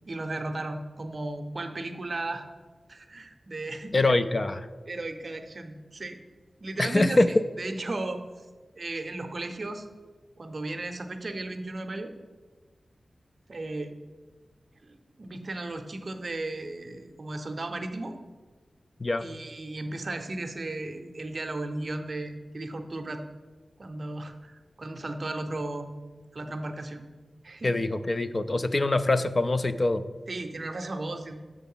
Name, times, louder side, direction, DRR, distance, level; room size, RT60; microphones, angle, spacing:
voice 1, 0.1-2.4 2.9-4.0 4.9-6.2 6.6-8.2 8.8-9.9 10.4-12.1 13.5-13.9 14.8-18.1 19.2-23.2 23.8-25.9 26.3-27.1 27.4-27.8 30.3-31.4, right 2 dB, 50° right, 6 dB, 0.6 m, -35 dB
voice 2, 3.9-4.7 6.8-7.5 19.0-19.3 27.6-30.0, left 2 dB, 35° left, 11 dB, 0.3 m, -24 dB
6.7 x 4.6 x 5.5 m, 1.4 s
wide cardioid pair, 115°, 0 cm